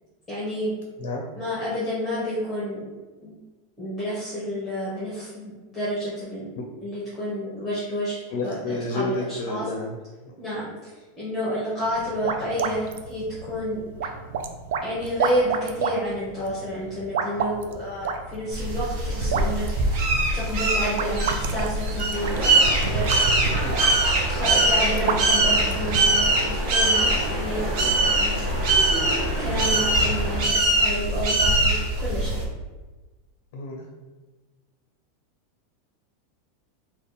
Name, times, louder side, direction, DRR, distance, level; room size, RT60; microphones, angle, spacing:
voice 1, 0.3-0.7 1.3-2.9 3.2-3.3 3.8-6.5 6.8-9.7 10.4-10.9 11.2-13.8 14.8-19.7 20.3-22.4 22.8-23.1 24.3-28.4 29.4-32.4, equal, 10° left, -10 dB, 0.9 m, -30 dB
voice 2, 8.3-10.0 10.2-10.3 23.6-24.0 33.5-33.9, left 2 dB, 50° left, 1 dB, 0.5 m, -30 dB
sound 1, 11.8-26.4, right 5 dB, 65° right, 0.3 m, -31 dB
sound 2, 18.5-32.4, right 2 dB, 40° right, 0.7 m, -23 dB
sound 3, 22.1-30.4, right 1 dB, 10° right, 1.2 m, -30 dB
3.5 x 2.3 x 4.0 m, 1.2 s
supercardioid pair, 180°, 0 cm